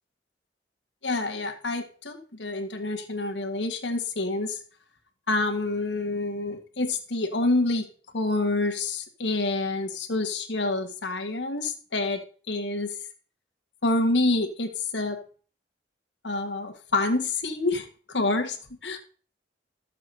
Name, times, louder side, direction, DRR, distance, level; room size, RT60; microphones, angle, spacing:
voice 1, 1.0-4.6 5.3-7.9 8.1-12.2 12.5-12.9 13.8-15.2 16.2-17.9 18.1-18.6 18.8-19.0, left 2 dB, 85° left, 5 dB, 1.9 m, -27 dB
13.5 x 7.4 x 4.3 m, 0.40 s
head